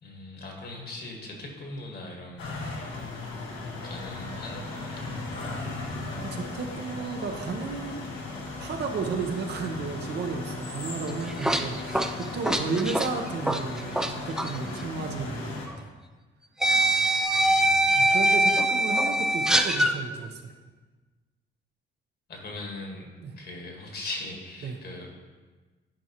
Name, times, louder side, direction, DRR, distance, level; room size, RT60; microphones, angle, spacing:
voice 1, 0.0-2.9 3.8-5.3 17.3-18.1 22.3-23.1 23.4-25.3, left 2 dB, 55° left, 0 dB, 1.6 m, -40 dB
sound 1, 2.4-15.7, left 3 dB, 80° left, 1.4 m, -37 dB
voice 2, 6.2-8.0 8.6-15.9 17.9-20.5 23.2-23.3 24.6-24.8, right 4 dB, 60° right, 3 dB, 0.9 m, -33 dB
sound 2, 11.1-14.1 14.4-14.6 15.7-15.8 16.6-19.9, right 1 dB, 5° right, 0.4 m, -23 dB
10.0 x 4.7 x 3.0 m, 1.3 s
cardioid pair, 90°, 20 cm